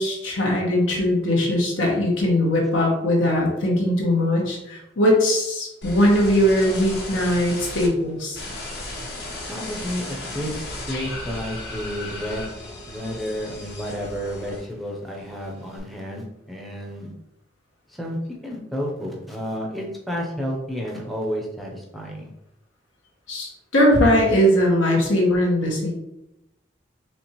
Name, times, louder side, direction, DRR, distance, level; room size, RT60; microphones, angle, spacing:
voice 1, 0.0-8.4 23.3-25.9, equal, 85° left, -1 dB, 1.2 m, -20 dB
sound 1, 5.8-7.9 8.3-14.9 15.2-15.8, left 2 dB, 55° left, 1.0 m, -35 dB
voice 2, 9.5-12.5 12.9-17.1 17.9-22.3, equal, ahead, -2 dB, 0.5 m, -31 dB
4.3 x 3.4 x 2.9 m, 0.87 s
head